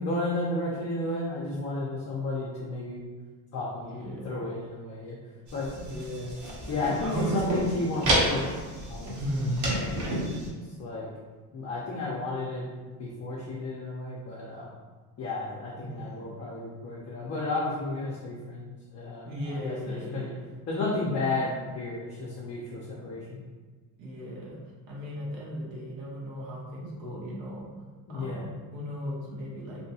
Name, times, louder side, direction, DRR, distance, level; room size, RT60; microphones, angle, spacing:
voice 1, 0.0-3.1 3.5-3.9 4.2-5.2 5.5-5.7 6.7-8.5 8.9-9.2 9.7-10.3 10.8-11.1 11.5-14.7 15.2-20.3 20.7-23.4 28.1-28.4, left 2 dB, 35° left, -5 dB, 0.5 m, -33 dB
voice 2, 3.9-4.3 5.8-6.3 7.0-7.4 9.1-9.6 15.8-16.3 19.2-20.4 24.0-24.6 24.9-27.7 28.1-29.8, equal, 65° right, -5 dB, 1.2 m, -36 dB
sound 1, 5.5-10.5, right 1 dB, 40° right, 0.8 m, -30 dB
2.8 x 2.2 x 2.7 m, 1.4 s
supercardioid pair, 95°, 48 cm